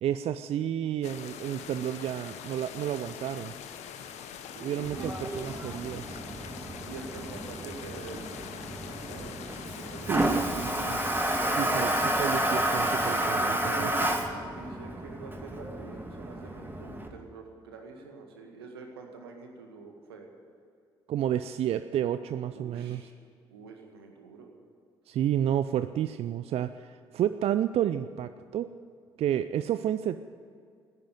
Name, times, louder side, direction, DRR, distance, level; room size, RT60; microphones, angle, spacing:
voice 1, 0.0-3.5 4.6-6.2 10.1-11.0 11.5-13.9 21.1-23.1 25.1-28.7 29.2-30.2, right 10 dB, 50° right, 12 dB, 0.5 m, -31 dB
sound 1, 1.0-13.3, left 8 dB, 60° left, 1.1 m, -43 dB
voice 2, 4.5-5.1 6.9-8.3 8.8-9.4 9.8-10.8 12.9-20.3 22.5-23.1 23.5-24.6, right 4 dB, 80° right, 3 dB, 1.9 m, -46 dB
Toilet flush, 4.8-17.1, right 1 dB, 15° right, 2.3 m, -31 dB
15.5 x 10.5 x 9.1 m, 2.3 s
figure-of-eight pair, 45°, 13 cm